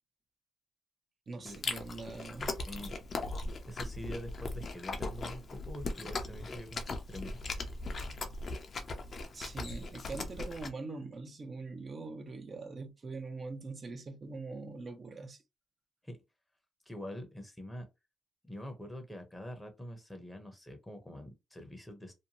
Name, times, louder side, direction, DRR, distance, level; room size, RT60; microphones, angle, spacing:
voice 1, 1.3-2.9 9.3-15.4, right 3 dB, 40° right, 0.6 m, -43 dB
Chewing mastication, 1.5-10.7, left 3 dB, 45° left, 0.6 m, -39 dB
voice 2, 3.6-7.4 16.0-16.2 16.9-17.9 18.4-22.1, equal, 5° left, 0.8 m, -45 dB
2.7 x 2.2 x 2.8 m
cardioid pair, 90°, 0 cm